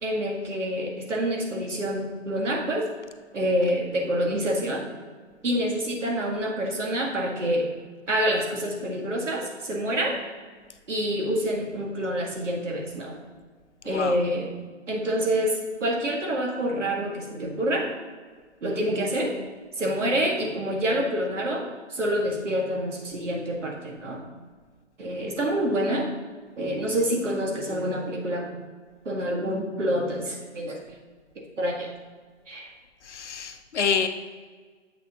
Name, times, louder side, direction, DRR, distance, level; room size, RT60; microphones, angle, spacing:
voice 1, 0.0-2.9 3.3-4.9 5.4-7.7 8.1-10.2 10.9-13.1 13.8-14.5 14.9-17.9 18.6-19.4 19.8-24.2 25.0-26.1 26.6-28.5 29.1-30.8 31.6-31.9 32.5-32.7, equal, 75° right, 0 dB, 1.9 m, -27 dB
voice 2, 13.9-14.2 33.1-34.1, left 6 dB, 70° left, 8 dB, 0.8 m, -27 dB
7.9 x 6.1 x 2.9 m, 1.5 s
hypercardioid pair, 145°, 37 cm